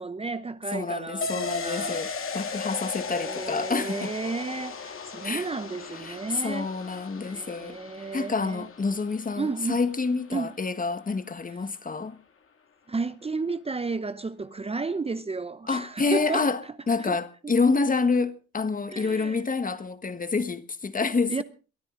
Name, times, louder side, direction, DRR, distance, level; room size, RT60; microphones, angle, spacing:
voice 1, 0.0-2.0 3.1-6.7 7.2-8.7 9.4-9.8 10.3-10.5 12.9-16.5 17.0-17.2 17.4-17.5 18.9-19.4 21.3-21.4, right 4 dB, 20° right, 0.8 m, -32 dB
voice 2, 0.7-4.1 5.2-5.5 6.0-7.8 8.1-12.2 15.7-16.6 16.9-21.4, left 4 dB, 25° left, 1.4 m, -28 dB
sound 1, 1.2-10.6 10.9-11.0, left 4 dB, 45° left, 2.4 m, -37 dB
22.5 x 13.0 x 3.8 m
cardioid pair, 90°, 30 cm